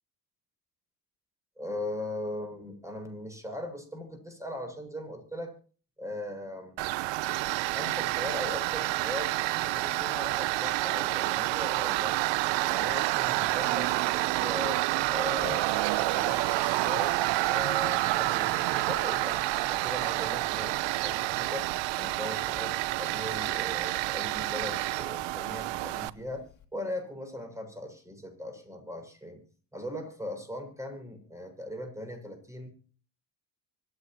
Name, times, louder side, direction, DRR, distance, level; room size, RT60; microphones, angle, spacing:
voice 1, 1.6-5.5 6.0-6.8 7.7-12.3 12.6-14.8 15.1-15.6 16.0-17.2 17.5-21.7 22.0-26.5 26.7-29.4 29.7-32.7, left 1 dB, 5° right, 5 dB, 7.2 m, -39 dB
Tools, 6.8-26.1, right 19 dB, 60° right, 0.9 m, -28 dB
Toilet flush, 15.1-26.6, left 7 dB, 35° left, 2.5 m, -50 dB
25.5 x 9.2 x 3.1 m, 0.40 s
hypercardioid pair, 65°, 48 cm